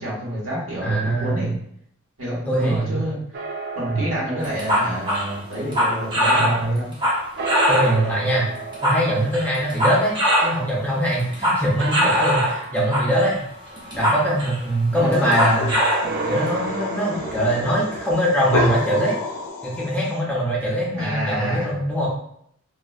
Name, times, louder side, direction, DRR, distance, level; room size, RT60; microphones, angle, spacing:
voice 1, 0.0-1.5 2.2-3.4 3.7-6.9 13.9-14.0 14.9-15.6 20.9-21.7, equal, 70° right, -7 dB, 1.3 m, -28 dB
voice 2, 0.8-1.5 2.5-3.0 3.9-4.0 6.3-6.8 7.7-8.5 8.8-10.1 10.4-13.4 13.9-15.7 16.2-19.2 19.6-22.1, right 1 dB, 10° left, -5 dB, 0.6 m, -22 dB
sound 1, 3.3-7.0 7.3-11.2 11.8-13.6 16.0-19.5, right 3 dB, 50° right, 0.3 m, -33 dB
sound 2, 4.4-8.0 8.6-10.6 10.9-12.6 12.9-13.3 13.7-14.7 15.1-16.1, equal, 25° right, 0.7 m, -21 dB
sound 3, 15.2-20.2, left 3 dB, 90° left, 0.4 m, -30 dB
2.9 x 2.5 x 2.4 m, 0.68 s
head